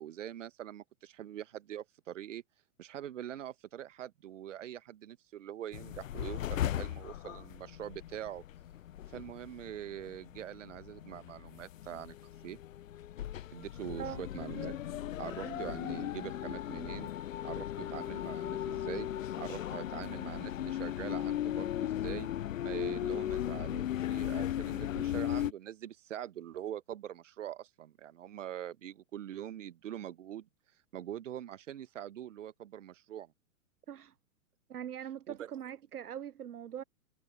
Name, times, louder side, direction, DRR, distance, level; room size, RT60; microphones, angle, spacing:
voice 1, 0.0-2.4 2.8-8.4 9.1-12.6 13.5-14.8 15.2-17.1 17.4-19.1 19.4-22.3 22.6-30.5 30.9-33.3 35.3-35.5, right 11 dB, 55° right, 1.4 m, -43 dB
sound 1, 5.7-25.5, left 12 dB, 60° left, 0.5 m, -37 dB
voice 2, 34.7-36.8, right 10 dB, 85° right, 0.6 m, -42 dB
figure-of-eight pair, 110°, 44 cm